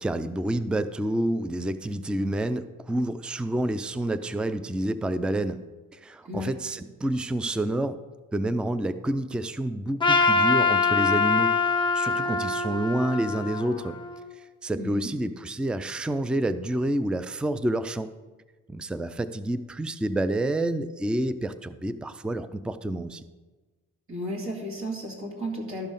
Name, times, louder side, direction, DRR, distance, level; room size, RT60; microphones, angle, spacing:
voice 1, 0.0-5.6 5.9-8.0 8.3-11.6 11.9-14.0 14.4-18.1 18.7-23.3, right 1 dB, 5° right, 13 dB, 0.4 m, -28 dB
Trumpet, 10.0-14.3, left 4 dB, 15° left, 1.0 m, -24 dB
voice 2, 14.8-15.1 24.1-25.9, equal, 45° right, -2 dB, 2.6 m, -33 dB
12.5 x 5.4 x 5.3 m, 1.3 s
cardioid pair, 90°, 30 cm